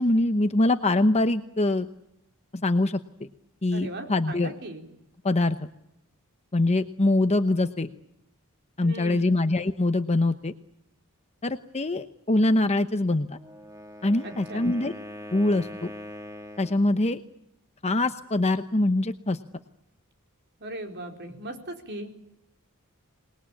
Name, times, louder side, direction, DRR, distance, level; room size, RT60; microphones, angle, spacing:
voice 1, 0.0-1.9 2.6-3.0 3.6-4.5 5.2-5.7 6.5-7.9 8.8-10.5 11.4-13.4 14.0-14.9 15.3-15.9 16.6-17.2 17.8-19.4, left 2 dB, 30° left, 9 dB, 0.9 m, -23 dB
voice 2, 3.7-4.8 8.8-9.4 14.2-14.6 20.6-22.1, right 1 dB, 50° right, 4 dB, 4.2 m, -38 dB
Wind instrument woodwind instrument, 13.3-16.9, equal, 15° right, 1.8 m, -42 dB
27.0 x 21.0 x 8.6 m, 0.82 s
head